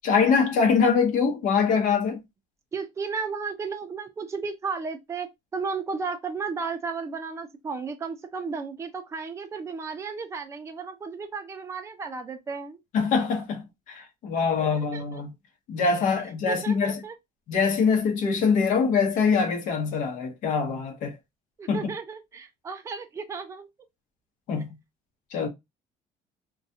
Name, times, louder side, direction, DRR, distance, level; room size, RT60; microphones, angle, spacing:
voice 1, 0.0-2.2 12.9-15.3 15.7-17.0 17.5-21.2 21.7-21.8 24.5-24.7 25.3-25.5, left 5 dB, 65° left, 0.8 m, -23 dB
voice 2, 2.7-5.3 5.5-12.8 14.6-15.2 16.5-17.2 21.6-23.7, right 5 dB, 20° right, 0.5 m, -34 dB
2.4 x 2.3 x 2.6 m
cardioid pair, 130°, 14 cm